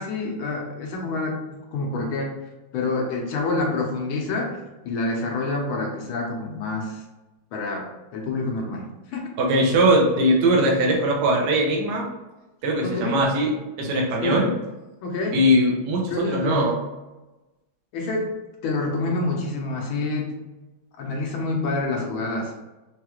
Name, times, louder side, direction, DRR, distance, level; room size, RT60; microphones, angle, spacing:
voice 1, 0.0-1.4 1.7-2.3 2.7-4.5 4.8-7.0 7.5-9.2 12.8-13.2 14.2-14.4 15.0-15.4 16.1-16.7 17.9-18.3 18.6-20.3 21.0-22.5, left 3 dB, 85° left, -1 dB, 1.7 m, -27 dB
voice 2, 9.4-12.1 12.6-14.5 15.3-16.8, right 1 dB, 65° right, -1 dB, 1.1 m, -20 dB
4.4 x 2.4 x 3.0 m, 1.1 s
omnidirectional pair, 2.2 m